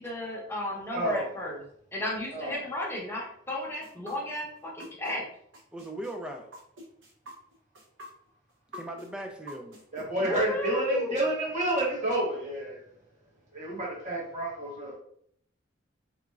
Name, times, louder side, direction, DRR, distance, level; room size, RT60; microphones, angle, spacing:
voice 1, 0.0-1.6 1.9-5.2 10.2-11.1, left 1 dB, 10° left, -4 dB, 0.8 m, -33 dB
voice 2, 0.9-1.3 2.3-2.6 9.9-12.8 13.5-14.9, right 1 dB, 35° right, -4 dB, 1.2 m, -30 dB
sound 1, 3.8-5.2 5.5-10.0, equal, 70° right, 0.7 m, -46 dB
voice 3, 5.7-6.5 8.7-9.8, right 1 dB, 5° right, 2 dB, 0.3 m, -38 dB
3.5 x 3.1 x 2.3 m, 0.68 s
head